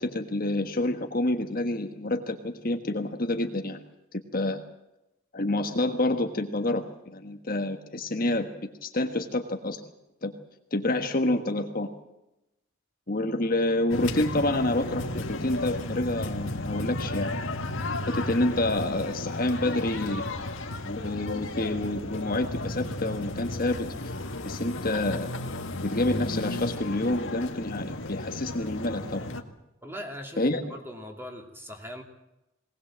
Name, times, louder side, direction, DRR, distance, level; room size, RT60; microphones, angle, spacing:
voice 1, 0.0-3.8 4.3-4.6 5.3-6.8 7.1-8.5 8.8-9.8 10.2-10.3 10.7-11.9 13.1-17.3 18.1-20.2 20.8-23.9 24.4-25.3 25.8-29.2 30.4-30.6, left 1 dB, 45° left, 5 dB, 1.5 m, -28 dB
sound 1, 13.9-29.4, left 2 dB, 70° left, 1.9 m, -34 dB
voice 2, 29.8-32.0, equal, 10° right, 2 dB, 2.9 m, -40 dB
20.0 x 20.0 x 7.5 m, 0.92 s
head